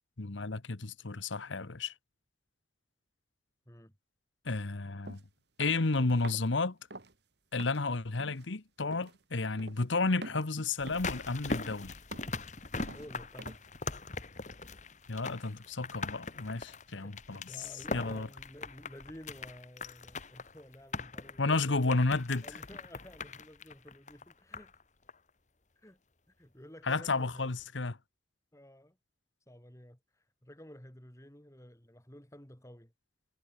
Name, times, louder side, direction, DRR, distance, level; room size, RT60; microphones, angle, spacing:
voice 1, 0.2-1.9 4.4-5.2 5.6-6.8 7.5-11.9 15.1-17.4 17.9-18.3 21.4-22.4 26.9-28.0, left 3 dB, 80° left, 1.2 m, -32 dB
sound 1, 5.0-5.2 5.6-5.9 6.2-6.5 6.9-7.1 7.6-7.8 8.2-8.4 8.9-9.2 9.6-9.8 10.2-10.5 10.9-11.2 11.5-11.8 12.1-12.4 12.8-13.1 13.4-13.7, right 2 dB, 60° right, 3.0 m, -47 dB
voice 2, 5.9-6.3 7.9-8.1 12.9-13.6 15.4-15.6 17.0-22.0 22.4-24.7 25.8-26.0 26.4-27.5 28.5-29.0 29.5-32.9, equal, 15° left, 2.6 m, -52 dB
sound 2, 10.8-24.8 25.1-25.2, left 3 dB, 40° left, 1.6 m, -41 dB
head